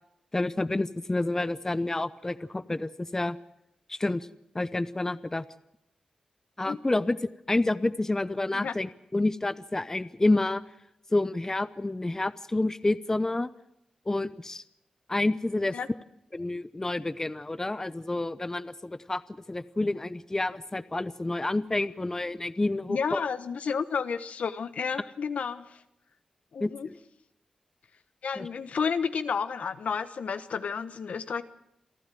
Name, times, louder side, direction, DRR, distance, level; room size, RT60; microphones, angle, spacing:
voice 1, 0.3-3.4 3.9-4.3 4.5-5.5 6.6-10.6 11.1-13.5 14.1-14.6 15.1-15.8 16.3-19.2 19.5-23.2 26.6-27.0 28.4-28.5, left 2 dB, 20° left, 15 dB, 0.8 m, -29 dB
voice 2, 22.9-25.8 26.5-26.9 28.2-31.4, left 6 dB, 75° left, 11 dB, 1.2 m, -31 dB
28.0 x 12.0 x 9.2 m, 0.82 s
cardioid pair, 70°, 2 cm